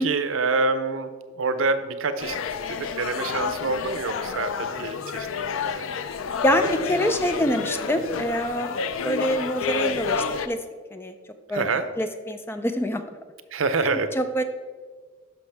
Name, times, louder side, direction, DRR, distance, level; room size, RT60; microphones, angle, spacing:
voice 1, 0.0-2.4 2.7-5.8 11.5-11.9 13.5-14.1, right 3 dB, 90° right, 11 dB, 0.6 m, -26 dB
sound 1, 2.2-10.5, left 5 dB, 90° left, 0.5 m, -29 dB
voice 2, 6.4-8.8 9.0-10.6 10.9-11.1 11.5-11.7 12.0-13.0 14.1-14.4, equal, 10° left, 8 dB, 0.4 m, -25 dB
11.5 x 5.9 x 3.4 m, 1.5 s
head